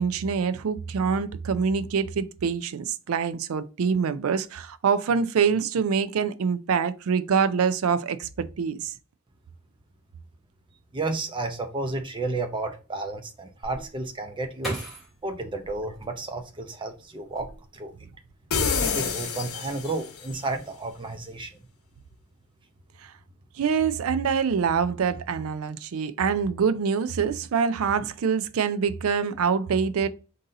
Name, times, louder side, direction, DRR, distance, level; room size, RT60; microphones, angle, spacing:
voice 1, 0.0-8.9 23.0-23.1 23.6-30.1, right 6 dB, 75° right, 0.4 m, -25 dB
voice 2, 10.9-14.8 15.2-17.5 17.7-17.9 18.8-21.5, right 2 dB, 25° right, 0.6 m, -32 dB
sound 1, 13.6-16.7 17.2-18.0 18.3-18.8, right 1 dB, ahead, 1.9 m, -38 dB
sound 2, 18.5-20.3, left 5 dB, 90° left, 0.7 m, -27 dB
4.0 x 2.7 x 3.7 m
head